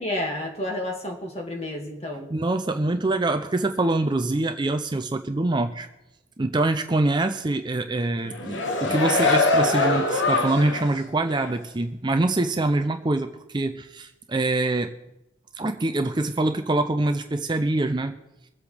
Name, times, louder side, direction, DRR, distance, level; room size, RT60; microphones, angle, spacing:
voice 1, 0.0-2.3, left 1 dB, 35° left, 1 dB, 2.2 m, -30 dB
voice 2, 2.3-5.9 6.4-14.9 15.6-18.2, right 2 dB, 25° right, 7 dB, 0.5 m, -24 dB
sound 1, 8.2-11.0 11.4-11.5, left 3 dB, 80° left, 1.3 m, -23 dB
24.0 x 8.1 x 3.4 m, 0.93 s
head